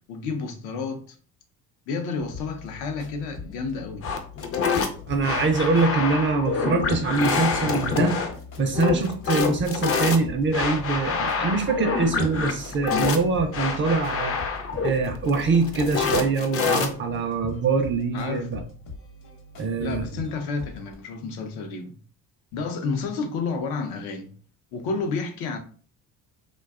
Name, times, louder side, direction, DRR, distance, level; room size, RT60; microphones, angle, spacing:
voice 1, 0.1-1.2 1.9-4.0 18.1-18.5 19.8-21.9 22.5-24.3 24.7-25.6, left 4 dB, 80° left, 0.6 m, -30 dB
sound 1, 2.2-21.0, left 3 dB, 55° left, 0.8 m, -42 dB
sound 2, 4.0-17.2, left 5 dB, 40° left, 0.5 m, -26 dB
voice 2, 5.1-8.2 8.6-14.4 14.8-18.6 19.6-20.1, right 4 dB, 30° right, 0.4 m, -24 dB
2.6 x 2.2 x 2.3 m
supercardioid pair, 90°, 38 cm